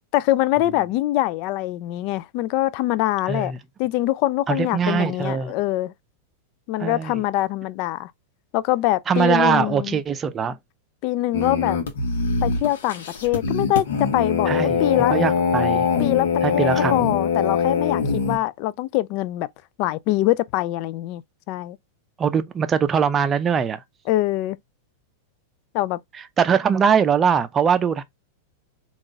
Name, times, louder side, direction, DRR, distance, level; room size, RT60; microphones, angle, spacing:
voice 1, 0.1-3.5 3.8-5.9 6.7-8.1 8.5-10.0 11.0-11.8 12.4-15.2 16.0-19.5 19.8-21.2 21.5-21.8 24.1-24.6 25.7-26.0, left 16 dB, 50° left, 0.3 m, -23 dB
voice 2, 3.3-3.6 4.5-5.5 6.8-7.2 9.1-10.6 14.5-14.8 15.1-15.9 16.4-17.1 18.0-18.3 22.2-23.8 26.4-28.0, right 7 dB, 25° right, 0.5 m, -22 dB
sound 1, 11.3-18.4, left 5 dB, 70° left, 1.0 m, -22 dB
3.7 x 2.4 x 3.6 m
hypercardioid pair, 100°, 0 cm